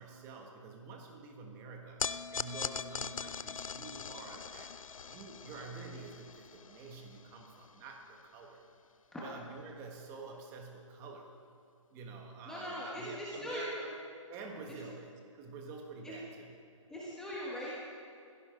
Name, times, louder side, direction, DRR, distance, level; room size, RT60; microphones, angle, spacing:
voice 1, 0.0-4.8 5.1-8.6 9.2-11.4 11.9-16.5, right 4 dB, 15° right, 2 dB, 1.4 m, -48 dB
sound 1, 2.0-8.4, left 6 dB, 80° left, 0.6 m, -42 dB
voice 2, 12.5-13.6 14.7-14.8 16.0-16.1 16.9-17.7, left 1 dB, 5° left, -7 dB, 1.4 m, -41 dB
18.0 x 16.0 x 3.9 m, 2.5 s
hypercardioid pair, 155°, 17 cm